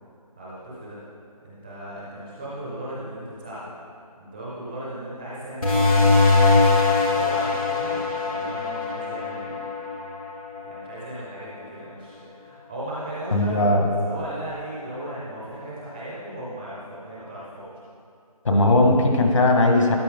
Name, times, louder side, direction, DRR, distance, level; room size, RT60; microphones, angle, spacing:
voice 1, 0.4-1.0 1.4-3.7 4.2-6.5 7.1-9.7 10.6-13.6 14.0-17.7, right 1 dB, 5° right, -7 dB, 0.5 m, -36 dB
sound 1, 5.6-10.8, left 3 dB, 65° left, 2.7 m, -21 dB
voice 2, 13.3-13.8 18.4-20.0, left 2 dB, 50° left, 2 dB, 1.7 m, -18 dB
13.5 x 10.0 x 3.7 m, 2.3 s
figure-of-eight pair, 165°, 20 cm